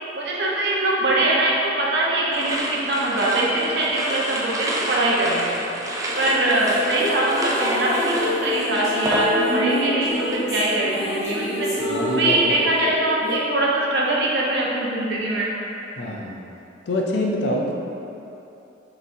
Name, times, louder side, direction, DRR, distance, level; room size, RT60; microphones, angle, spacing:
voice 1, 0.2-5.5 6.2-11.7 12.1-15.5, right 1 dB, 65° right, -4 dB, 0.7 m, -22 dB
sound 1, 2.3-9.7 10.0-10.5, right 1 dB, 20° right, 0.4 m, -29 dB
sound 2, 6.1-13.3, left 1 dB, 40° left, 1.0 m, -27 dB
voice 2, 11.9-12.4 16.0-16.4 16.9-17.7, left 1 dB, 65° left, -1 dB, 0.5 m, -25 dB
5.3 x 3.1 x 2.6 m, 2.9 s
head